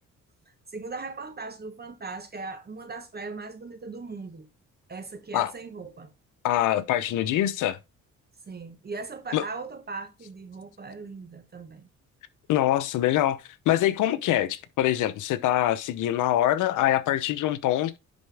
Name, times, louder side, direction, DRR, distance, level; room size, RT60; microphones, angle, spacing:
voice 1, 0.7-4.5 4.9-6.1 8.5-11.9, right 4 dB, 30° right, 1.2 m, -39 dB
voice 2, 6.4-7.8 9.3-9.4 12.5-18.0, left 13 dB, 90° left, 0.9 m, -24 dB
10.5 x 4.4 x 3.4 m
cardioid pair, 90°, 30 cm